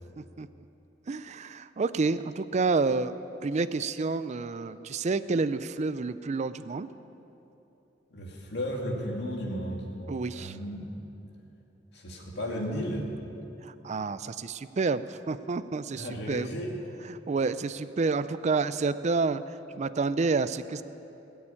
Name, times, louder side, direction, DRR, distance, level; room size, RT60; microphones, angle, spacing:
voice 1, 1.1-3.1 3.4-6.9 10.1-10.6 13.6-16.5 17.1-20.8, right 4 dB, 40° right, 13 dB, 0.4 m, -29 dB
voice 2, 8.1-9.9 10.3-10.9 11.9-13.0 16.0-16.7, equal, 65° left, 0 dB, 2.4 m, -34 dB
20.5 x 7.1 x 8.7 m, 2.9 s
head